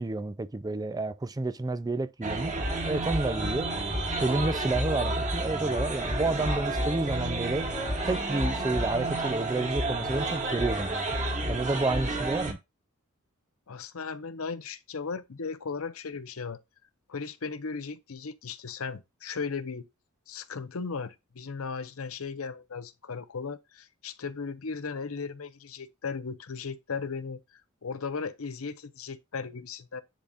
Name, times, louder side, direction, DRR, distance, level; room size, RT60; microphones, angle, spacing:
voice 1, 0.0-2.5 2.8-3.7 4.2-7.7 8.0-11.0 11.5-12.6, right 2 dB, 20° right, 0.4 m, -30 dB
sound 1, 2.2-12.5, right 2 dB, 35° right, 1.9 m, -30 dB
voice 2, 13.7-16.6 17.1-19.9 20.3-30.0, left 5 dB, 75° left, 0.7 m, -36 dB
10.5 x 4.1 x 2.4 m
head